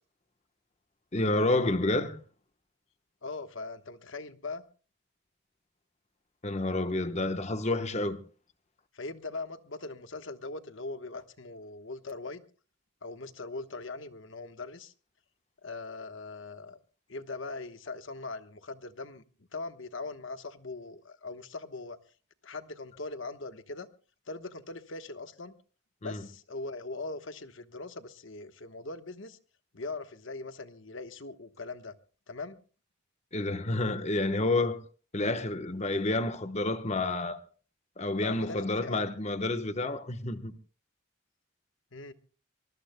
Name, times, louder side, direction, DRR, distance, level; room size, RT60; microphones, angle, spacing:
voice 1, 1.1-2.2 6.4-8.2 26.0-26.2 33.3-34.8 35.1-37.4 38.0-40.5, left 2 dB, 30° left, 1.0 m, -29 dB
voice 2, 3.2-4.6 8.9-12.4 13.0-14.9 15.6-16.8 17.1-19.2 19.5-22.0 22.4-23.9 24.3-25.5 26.0-29.4 29.7-31.9 32.3-32.6 38.2-39.1 41.9-42.1, left 3 dB, 60° left, 1.2 m, -40 dB
24.0 x 21.0 x 2.2 m
head